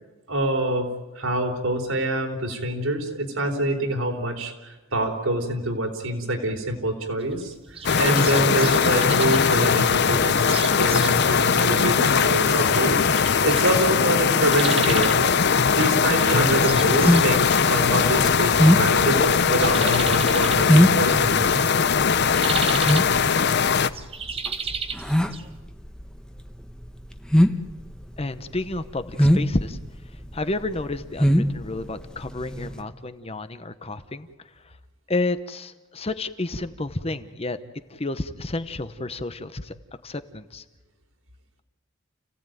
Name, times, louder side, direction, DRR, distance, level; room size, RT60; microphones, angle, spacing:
voice 1, 0.3-13.1 13.4-15.3 15.7-21.6, right 1 dB, 80° right, 4 dB, 3.9 m, -26 dB
sound 1, 7.2-25.6, right 5 dB, 30° right, 1.3 m, -36 dB
sound 2, 7.8-23.9, left 6 dB, 55° left, 0.7 m, -20 dB
sound 3, 16.4-32.8, equal, 5° left, 1.1 m, -22 dB
voice 2, 28.2-29.8 30.3-34.3 35.1-37.6 37.9-39.7 40.0-40.6, left 2 dB, 30° left, 11 dB, 1.0 m, -30 dB
29.5 x 16.5 x 9.2 m, 1.2 s
head